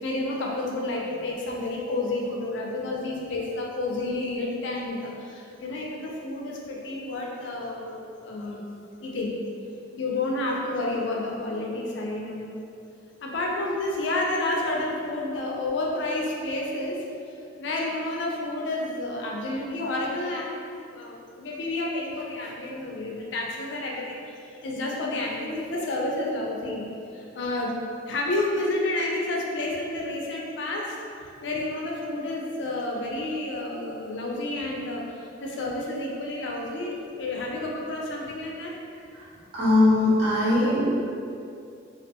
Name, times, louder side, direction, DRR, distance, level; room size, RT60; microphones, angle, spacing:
voice 1, 0.0-8.6 9.0-9.4 10.0-12.6 13.2-17.0 17.6-26.8 27.1-27.8 28.0-31.0 31.4-35.0 35.4-38.7, left 2 dB, 70° left, -2 dB, 0.4 m, -30 dB
voice 2, 39.5-40.9, left 2 dB, 60° right, -11 dB, 1.1 m, -20 dB
2.4 x 2.2 x 2.7 m, 2.5 s
head